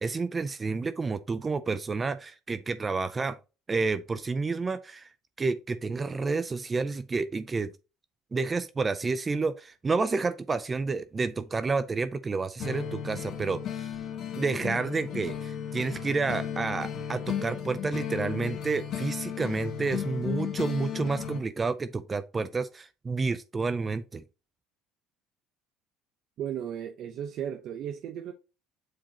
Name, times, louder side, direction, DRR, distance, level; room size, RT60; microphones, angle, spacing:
voice 1, 0.0-3.4 3.7-5.1 5.4-7.7 8.3-14.0 14.4-24.2, right 4 dB, 20° right, 0.5 m, -30 dB
sound 1, 12.6-21.4, left 8 dB, 50° left, 1.7 m, -35 dB
voice 2, 26.4-28.3, right 9 dB, 55° right, 0.8 m, -35 dB
7.6 x 4.4 x 2.9 m
cardioid pair, 120°, 0 cm